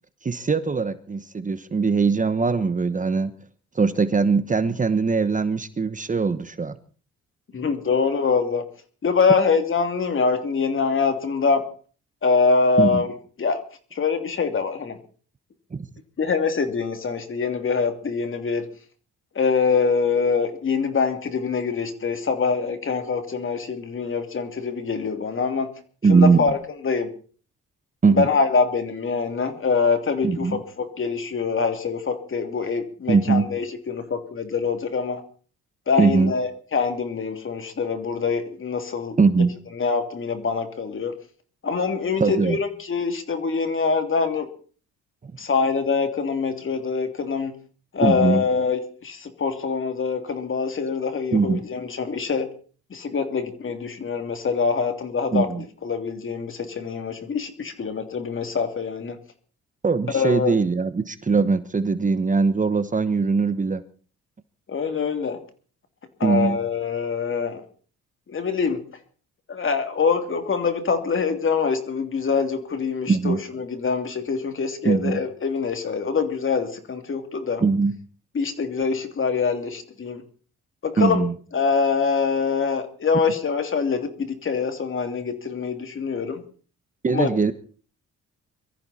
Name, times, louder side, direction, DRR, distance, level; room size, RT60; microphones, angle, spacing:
voice 1, 0.2-3.3 3.7-6.7 12.8-13.0 15.7-15.8 26.0-26.5 28.0-28.3 30.2-30.6 33.1-33.5 36.0-36.3 39.2-39.5 42.2-42.6 48.0-48.4 51.3-51.7 55.3-55.6 59.8-63.8 66.2-66.6 73.1-73.4 74.8-75.2 77.6-78.0 81.0-81.3 87.0-87.5, right 4 dB, 25° right, 12 dB, 1.1 m, -21 dB
voice 2, 7.5-8.7 9.0-11.6 12.2-13.1 13.4-13.6 13.9-15.0 16.2-18.7 19.3-25.7 26.1-26.6 26.8-27.1 28.1-35.2 35.9-39.2 39.7-41.2 41.6-44.5 45.4-47.5 47.9-52.5 52.9-59.2 60.1-60.5 64.7-65.4 66.2-67.6 68.3-68.8 69.5-77.6 78.3-80.2 80.8-81.2 81.5-86.4 87.1-87.3, left 5 dB, 40° left, 7 dB, 3.0 m, -24 dB
23.5 x 14.0 x 4.3 m, 0.42 s
cardioid pair, 90°, 30 cm